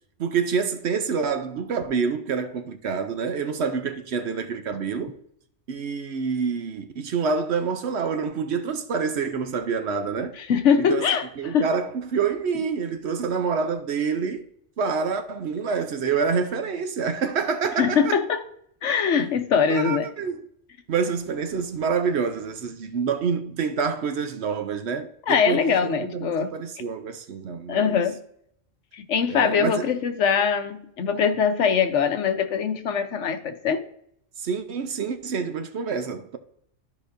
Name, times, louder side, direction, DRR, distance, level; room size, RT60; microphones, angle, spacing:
voice 1, 0.2-5.2 5.7-10.4 10.8-11.0 11.4-14.4 14.8-18.2 19.7-20.4 20.9-28.0 29.3-29.8 34.4-36.4, right 5 dB, 60° right, 0.9 m, -27 dB
voice 2, 10.4-11.8 17.8-18.4 18.8-20.1 25.3-26.5 27.7-28.2 28.9-33.8, left 6 dB, 70° left, 1.1 m, -22 dB
13.5 x 5.0 x 2.6 m
omnidirectional pair, 1.3 m